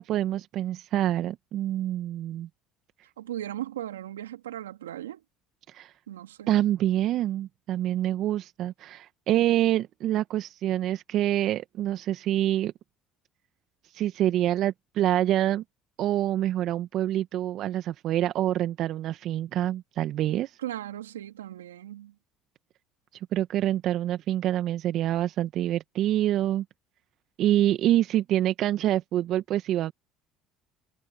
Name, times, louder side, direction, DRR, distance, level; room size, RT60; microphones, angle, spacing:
voice 1, 0.0-2.5 5.7-5.9 6.5-12.7 13.9-15.6 16.0-20.6 23.3-26.6 27.4-29.9, right 13 dB, 60° right, 1.2 m, -26 dB
voice 2, 3.2-5.2 6.1-6.6 20.6-22.1, right 12 dB, 90° right, 3.1 m, -37 dB
hypercardioid pair, 65°, 0 cm